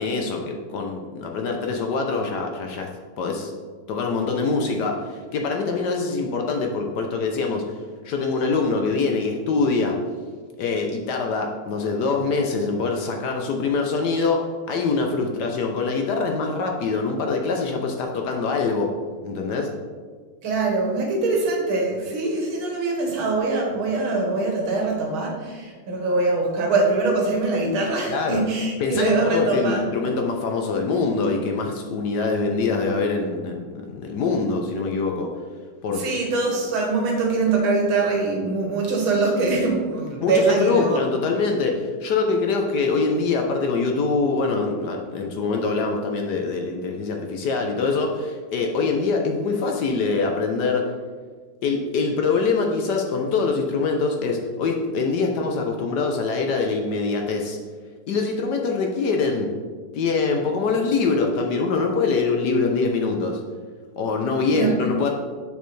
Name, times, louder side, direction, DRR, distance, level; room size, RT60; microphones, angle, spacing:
voice 1, 0.0-2.9 3.2-3.5 3.9-7.6 8.0-10.0 10.6-14.4 14.7-18.9 19.2-19.7 28.1-28.4 28.8-35.3 35.8-36.0 40.2-50.9 51.6-57.6 58.1-59.5 59.9-63.4 64.0-65.1, left 4 dB, 65° left, 2 dB, 1.1 m, -24 dB
voice 2, 20.4-29.9 35.9-41.0 64.5-64.8, right 3 dB, 80° right, -1 dB, 2.2 m, -23 dB
6.7 x 6.5 x 3.2 m, 1.5 s
omnidirectional pair, 2.2 m